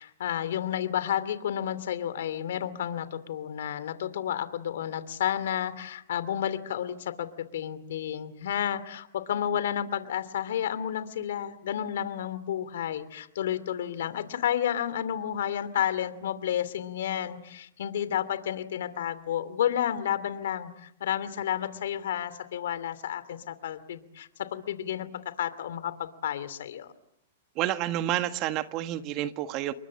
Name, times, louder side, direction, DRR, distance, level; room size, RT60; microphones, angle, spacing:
voice 1, 0.0-26.9, left 10 dB, 75° left, 13 dB, 2.7 m, -31 dB
voice 2, 27.5-29.7, right 13 dB, 40° right, 10 dB, 1.6 m, -29 dB
29.0 x 23.0 x 7.7 m, 0.75 s
hypercardioid pair, 135°, 0 cm